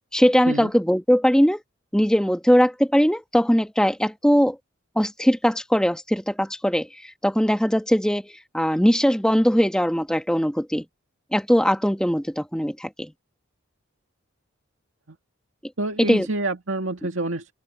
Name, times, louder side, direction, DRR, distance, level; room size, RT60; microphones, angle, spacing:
voice 1, 0.1-1.6 1.9-4.6 4.9-10.8 11.3-13.1 16.0-16.3, equal, 5° left, 1.5 m, -20 dB
voice 2, 15.8-17.5, right 2 dB, 70° right, 2.2 m, -27 dB
open air
head